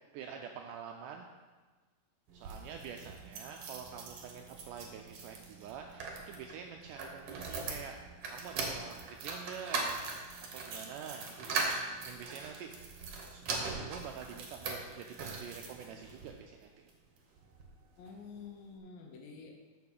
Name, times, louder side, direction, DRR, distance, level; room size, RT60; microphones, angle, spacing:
voice 1, 0.1-1.3 2.3-8.0 8.3-9.9 10.5-12.8 13.3-16.9, right 7 dB, 80° right, 3 dB, 1.9 m, -47 dB
sound 1, 2.3-16.3 16.9-17.7 18.1-18.2 18.4-18.5, right 4 dB, 60° right, 1.6 m, -41 dB
voice 2, 18.0-19.6, left 5 dB, 75° left, 1 dB, 2.9 m, -49 dB
7.1 x 6.1 x 6.7 m, 1.4 s
omnidirectional pair, 4.2 m